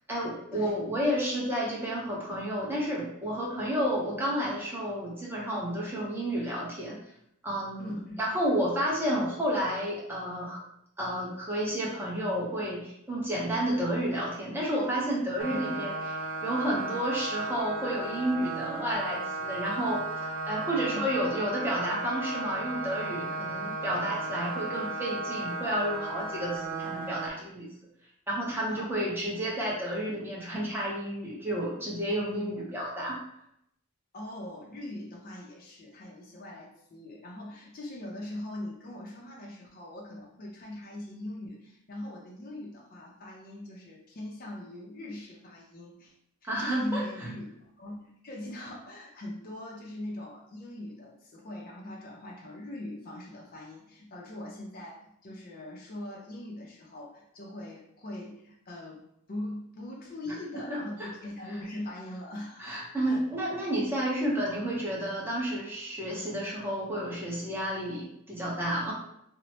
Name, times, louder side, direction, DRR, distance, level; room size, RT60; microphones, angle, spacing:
voice 1, 0.1-7.0 7.4-10.6 11.0-27.7 28.3-33.2 46.4-47.0 61.0-61.1 62.6-68.9, equal, 10° right, -5 dB, 0.7 m, -31 dB
voice 2, 7.8-8.2 15.5-15.6 20.8-21.1 28.7-29.0 34.1-46.1 46.4-47.5 47.8-59.0 59.3-63.2, left 1 dB, 45° left, -3 dB, 0.5 m, -41 dB
sound 1, 15.4-27.3, right 3 dB, 80° right, 0.4 m, -35 dB
3.0 x 2.0 x 2.7 m, 0.74 s
head